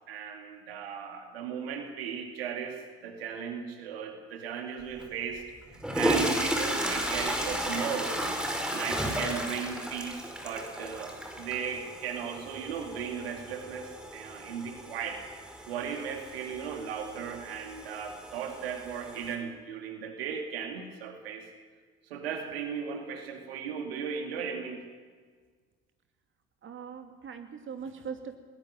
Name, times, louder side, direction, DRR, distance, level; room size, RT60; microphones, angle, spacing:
voice 1, 0.1-5.4 5.7-8.2 8.7-15.2 15.7-21.5 22.0-24.8, right 7 dB, 75° right, 5 dB, 2.5 m, -36 dB
sound 1, 5.0-5.1 5.7-19.3, right 1 dB, 5° right, 5.2 m, -34 dB
voice 2, 26.6-28.4, right 6 dB, 40° right, 6 dB, 2.6 m, -41 dB
20.0 x 20.0 x 9.1 m, 1.5 s
figure-of-eight pair, 50°, 30 cm